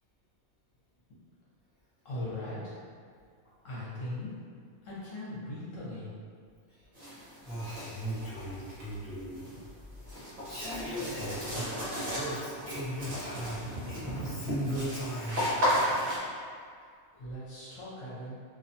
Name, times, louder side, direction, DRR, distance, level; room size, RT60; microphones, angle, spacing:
voice 1, 2.0-2.7 3.6-4.3 4.8-6.1 17.2-18.4, left 1 dB, 70° left, -9 dB, 1.0 m, -39 dB
sound 1, 6.9-16.2, equal, 50° right, 0.9 m, -34 dB
voice 2, 7.4-9.4 10.5-11.7 12.1-15.4, equal, 5° right, -15 dB, 0.9 m, -37 dB
2.5 x 2.2 x 2.6 m, 2.1 s
omnidirectional pair, 1.5 m